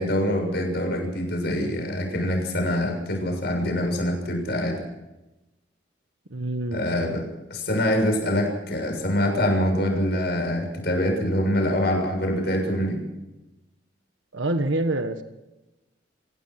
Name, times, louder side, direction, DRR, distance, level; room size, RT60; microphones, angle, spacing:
voice 1, 0.0-4.8 6.7-7.2 7.5-13.0, left 1 dB, 55° left, 3 dB, 6.8 m, -25 dB
voice 2, 6.3-6.8 14.3-15.2, right 2 dB, 80° right, 7 dB, 1.5 m, -26 dB
27.0 x 17.0 x 6.1 m, 1.0 s
head